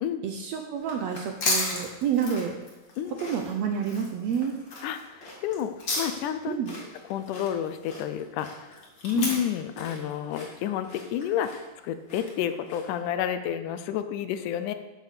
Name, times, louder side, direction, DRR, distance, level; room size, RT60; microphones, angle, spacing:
voice 1, 0.2-2.6 3.2-4.5 6.5-6.7 9.1-9.3, right 7 dB, 70° right, 4 dB, 1.6 m, -29 dB
sound 1, 0.8-13.0, left 2 dB, 40° left, 2.6 m, -35 dB
voice 2, 4.8-5.7 6.0-6.6 7.1-14.7, left 10 dB, 80° left, 10 dB, 2.2 m, -30 dB
8.2 x 7.3 x 6.6 m, 1.1 s
omnidirectional pair, 3.7 m